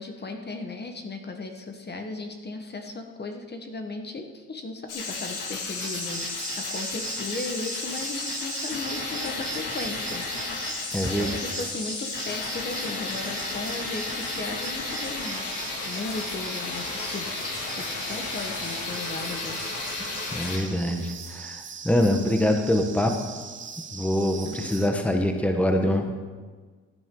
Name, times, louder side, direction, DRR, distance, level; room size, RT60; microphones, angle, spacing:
voice 1, 0.0-6.2 6.6-10.3 10.6-10.7 11.1-15.5 15.8-19.8 24.4-25.3, left 3 dB, 35° left, 4 dB, 1.3 m, -36 dB
sound 1, 4.9-20.6, left 3 dB, 85° left, 2.1 m, -33 dB
sound 2, 5.8-24.9, right 6 dB, 40° right, 1.2 m, -40 dB
voice 2, 10.9-11.3 20.3-23.1 23.9-26.1, left 1 dB, 5° left, 4 dB, 1.2 m, -24 dB
16.0 x 9.5 x 3.8 m, 1.4 s
cardioid pair, 90°, 30 cm